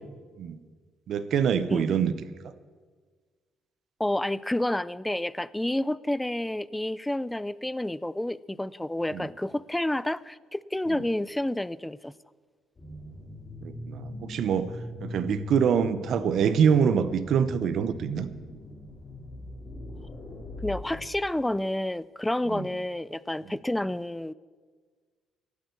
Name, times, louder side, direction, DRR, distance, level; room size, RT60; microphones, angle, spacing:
voice 1, 1.1-2.1 9.1-9.3 13.6-14.7 15.0-18.3 22.5-22.7, right 7 dB, 60° right, 14 dB, 0.8 m, -25 dB
voice 2, 4.0-12.1 16.2-16.3 20.6-24.3, left 1 dB, 5° left, 19 dB, 0.3 m, -29 dB
sound 1, 12.8-21.1, left 2 dB, 30° left, 3.0 m, -41 dB
11.5 x 8.1 x 9.6 m, 1.5 s
cardioid pair, 110°, 0 cm